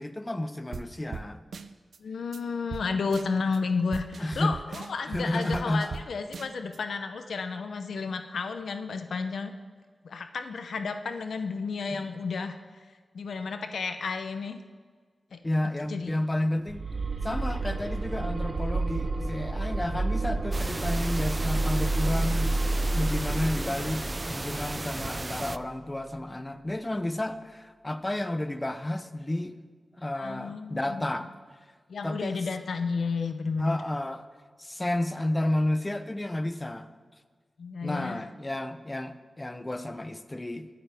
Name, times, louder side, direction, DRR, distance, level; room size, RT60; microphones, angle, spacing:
voice 1, 0.0-1.4 4.2-4.6 5.1-6.0 12.0-12.1 15.4-16.8 17.2-22.5 22.9-29.6 30.0-31.3 32.0-32.4 33.6-34.3 34.6-36.9 37.8-40.7, left 1 dB, 20° left, 10 dB, 0.7 m, -31 dB
sound 1, 0.7-0.9 1.1-1.3 1.5-2.0 2.3-2.4 2.7-2.8 3.1-3.6 3.9-6.0 6.3-6.8, right 5 dB, 80° right, 0.6 m, -39 dB
voice 2, 2.0-9.5 10.0-12.8 13.1-14.6 15.3-16.2 30.1-31.3 31.9-33.8 37.6-38.2, left 4 dB, 85° left, 7 dB, 0.7 m, -32 dB
sound 2, 16.7-25.6, right 2 dB, 55° right, 0.9 m, -30 dB
sound 3, 20.5-25.6, right 2 dB, 25° right, 0.4 m, -35 dB
22.5 x 8.7 x 3.5 m, 1.5 s
wide cardioid pair, 100°, 0 cm